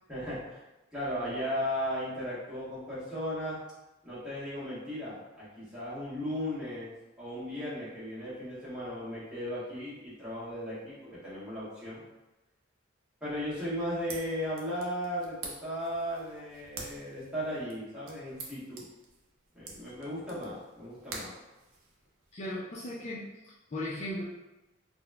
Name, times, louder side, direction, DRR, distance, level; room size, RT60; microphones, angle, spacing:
voice 1, 0.1-0.6 0.9-3.6 4.0-12.0 13.2-18.9 19.5-21.3, equal, 5° right, -11 dB, 1.1 m, -36 dB
sound 1, 13.7-22.3, right 3 dB, 90° right, 0.6 m, -48 dB
voice 2, 22.3-24.2, left 1 dB, 35° left, -6 dB, 0.4 m, -37 dB
3.9 x 2.1 x 2.2 m, 1.0 s
head